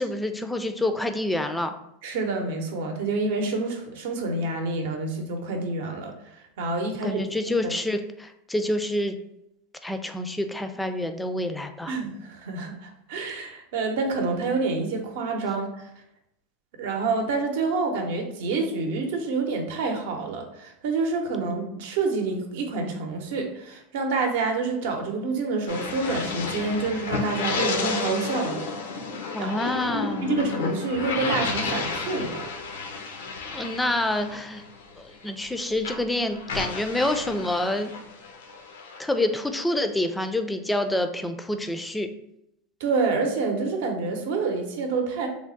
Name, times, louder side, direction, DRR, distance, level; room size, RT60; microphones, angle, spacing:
voice 1, 0.0-1.7 7.0-9.2 9.8-11.9 29.3-30.3 33.5-34.6 35.0-37.9 39.0-42.1, left 1 dB, 5° left, 7 dB, 0.3 m, -27 dB
voice 2, 2.0-7.7 11.9-15.9 16.8-28.7 29.4-29.5 30.2-32.4 42.8-45.3, right 3 dB, 75° right, 3 dB, 0.7 m, -28 dB
sound 1, 25.7-35.5 35.8-39.6, left 4 dB, 85° left, 0.5 m, -32 dB
3.5 x 2.0 x 3.8 m, 0.80 s
supercardioid pair, 115°, 0 cm